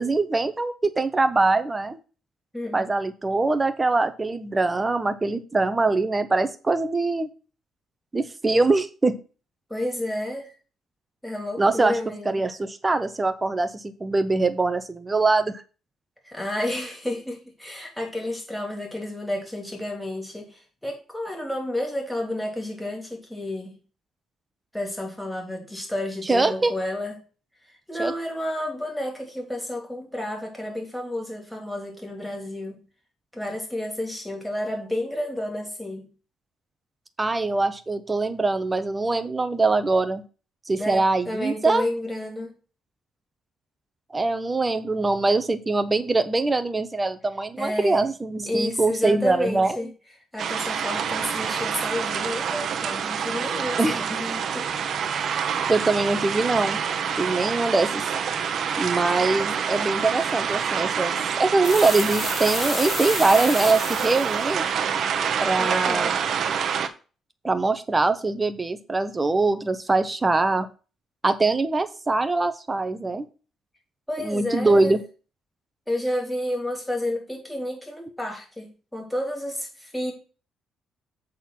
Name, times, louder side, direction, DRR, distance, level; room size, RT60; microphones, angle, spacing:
voice 1, 0.0-2.0 2.7-7.3 8.1-9.2 11.6-11.9 12.3-15.6 26.3-26.7 28.0-28.1 37.2-40.2 40.7-41.9 44.1-49.8 53.8-54.0 55.7-56.8 57.2-58.0 58.8-64.7 65.4-66.2 67.4-70.7 71.2-73.2 74.2-75.0, right 3 dB, 20° right, 12 dB, 1.0 m, -23 dB
voice 2, 2.5-2.9 9.7-10.5 11.2-12.4 16.2-23.7 24.7-27.2 27.9-32.8 33.3-36.1 40.8-42.5 47.6-48.1 48.5-49.9 50.3-54.7 65.6-66.1 74.1-75.0 75.9-80.1, left 1 dB, 5° left, 1 dB, 3.1 m, -31 dB
sound 1, 50.4-66.9, right 7 dB, 65° right, 0.9 m, -27 dB
sound 2, 61.6-64.4, left 5 dB, 45° left, 1.0 m, -31 dB
8.3 x 4.0 x 6.0 m, 0.35 s
cardioid pair, 90°, 0 cm